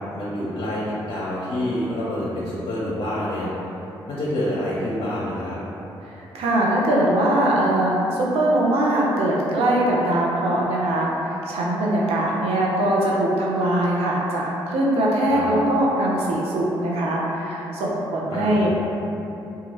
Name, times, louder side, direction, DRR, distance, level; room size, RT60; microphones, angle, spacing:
voice 1, 0.2-3.5 4.1-5.6 15.3-15.5 18.3-18.7, left 1 dB, 60° left, -8 dB, 0.7 m, -27 dB
voice 2, 6.1-18.8, right 1 dB, 75° right, -4 dB, 0.6 m, -21 dB
3.0 x 2.3 x 3.0 m, 3.0 s
supercardioid pair, 50°, 10 cm